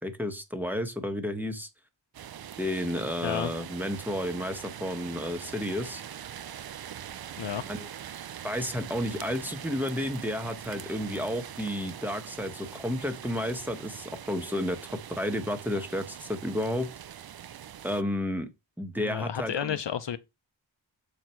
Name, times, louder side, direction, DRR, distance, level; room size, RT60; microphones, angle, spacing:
voice 1, 0.0-1.7 2.6-6.0 7.7-7.9 8.4-16.9 17.8-18.5 18.8-19.8, left 1 dB, 5° right, 1.4 m, -32 dB
sound 1, 2.1-18.0, right 10 dB, 50° right, 0.5 m, -43 dB
voice 2, 3.2-3.5 7.4-7.6 18.9-20.2, left 9 dB, 65° left, 0.7 m, -31 dB
7.2 x 4.5 x 4.6 m
cardioid pair, 55°, 47 cm